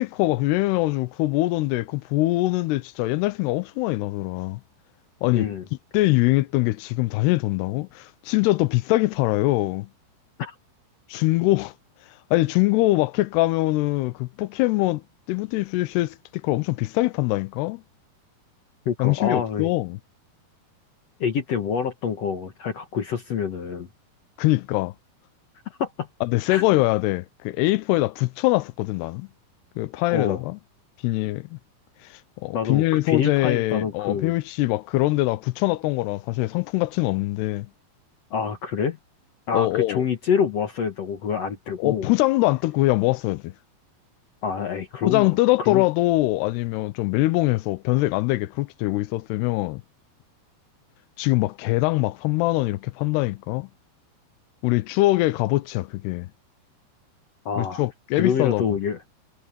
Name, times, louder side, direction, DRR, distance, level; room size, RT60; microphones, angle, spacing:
voice 1, 0.0-4.6 5.2-5.5 5.9-9.9 11.1-11.7 12.3-15.0 15.3-17.8 19.0-20.0 24.4-24.9 26.2-29.3 29.8-30.6 31.0-31.6 32.1-37.7 39.5-40.0 41.8-43.5 45.0-49.8 51.2-53.7 54.6-56.3 57.6-58.6, left 19 dB, 90° left, 2.8 m, -23 dB
voice 2, 5.3-5.7 10.4-10.5 18.9-19.7 21.2-23.9 25.7-26.1 26.5-26.6 30.1-30.4 32.5-34.3 38.3-39.0 39.5-42.1 44.4-45.3 45.6-45.8 57.5-57.8 58.1-59.0, left 7 dB, 60° left, 1.7 m, -26 dB
omnidirectional pair, 4.6 m